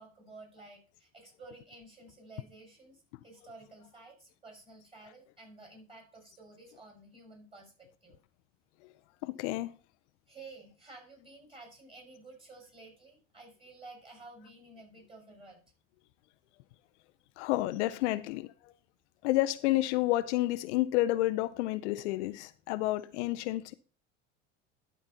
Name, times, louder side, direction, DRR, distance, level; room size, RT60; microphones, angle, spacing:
voice 1, 0.0-8.2 10.3-15.6, right 3 dB, 15° right, 5.8 m, -52 dB
voice 2, 9.2-9.7 17.4-18.5 19.2-23.7, left 17 dB, 65° left, 0.6 m, -30 dB
12.0 x 4.3 x 5.5 m
hypercardioid pair, 75°, 37 cm